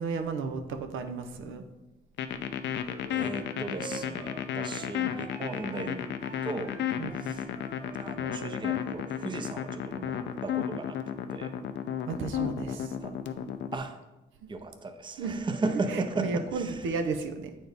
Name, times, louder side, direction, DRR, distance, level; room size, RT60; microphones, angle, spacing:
voice 1, 0.0-1.7 7.0-7.3 12.1-12.9 14.4-14.5 15.2-15.4 15.9-17.6, right 4 dB, 80° right, 6 dB, 0.6 m, -34 dB
sound 1, 2.2-13.8, left 9 dB, 65° left, 0.5 m, -33 dB
sound 2, 2.8-9.4, right 2 dB, 50° right, 2.1 m, -47 dB
voice 2, 3.1-6.8 7.2-7.5 8.0-11.0 11.3-11.6 12.3-13.2 13.7-14.0 14.5-16.8, right 3 dB, 25° right, 8 dB, 0.6 m, -36 dB
7.7 x 4.3 x 3.4 m, 1.0 s
cardioid pair, 90°, 20 cm